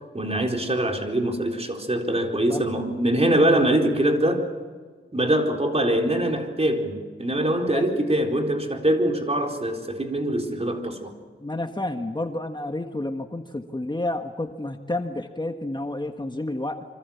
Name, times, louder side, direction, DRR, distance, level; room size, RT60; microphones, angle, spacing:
voice 1, 0.1-4.4 5.1-11.1, right 1 dB, 30° right, 2 dB, 4.1 m, -23 dB
voice 2, 11.4-16.8, left 1 dB, 20° left, 5 dB, 1.6 m, -30 dB
26.5 x 25.5 x 7.2 m, 1.5 s
wide cardioid pair, 65°, 21 cm